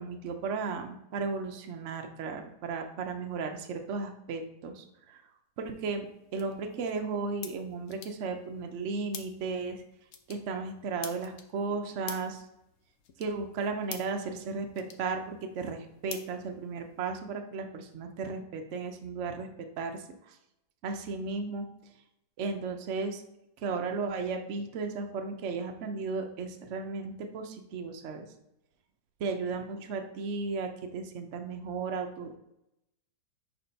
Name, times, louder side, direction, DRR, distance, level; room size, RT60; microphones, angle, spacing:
voice 1, 0.0-5.2 5.6-9.8 10.3-12.4 13.2-19.5 19.8-20.4 20.8-21.7 22.4-23.2 23.6-28.3 29.2-32.4, right 4 dB, 75° right, 4 dB, 0.6 m, -35 dB
sound 1, 5.6-17.1, left 7 dB, 90° left, 0.6 m, -49 dB
4.4 x 4.1 x 5.2 m, 0.86 s
omnidirectional pair, 2.1 m